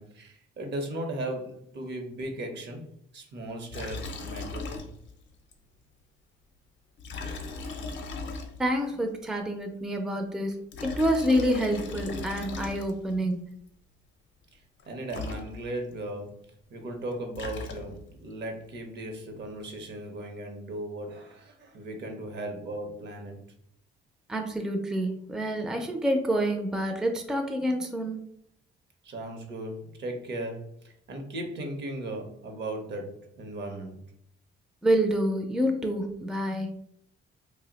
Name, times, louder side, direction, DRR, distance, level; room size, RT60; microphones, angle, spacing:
voice 1, 0.0-2.9 3.1-4.9 14.5-14.6 14.9-23.4 29.0-34.0, right 1 dB, 60° right, 4 dB, 0.8 m, -37 dB
Liquid, 3.7-5.2 5.5-5.6 7.0-8.9 10.5-13.2 14.8-14.9 15.1-15.9 17.1-18.2, left 3 dB, 65° left, 0.5 m, -37 dB
voice 2, 8.6-13.4 24.3-28.2 34.8-36.7, equal, 5° right, 4 dB, 0.4 m, -27 dB
2.6 x 2.1 x 3.8 m, 0.71 s
cardioid pair, 90°, 20 cm